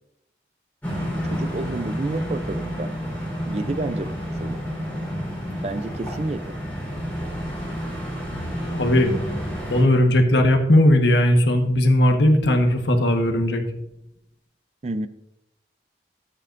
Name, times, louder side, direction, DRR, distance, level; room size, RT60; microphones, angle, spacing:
sound 1, 0.8-9.8, equal, 10° left, 4.0 m, -30 dB
voice 1, 1.2-2.9 3.5-4.6 5.6-6.6 14.8-15.1, right 2 dB, 35° right, 13 dB, 0.4 m, -29 dB
voice 2, 8.7-9.1 9.7-13.6, left 1 dB, 80° left, 4 dB, 1.3 m, -18 dB
13.5 x 8.9 x 2.6 m, 0.84 s
head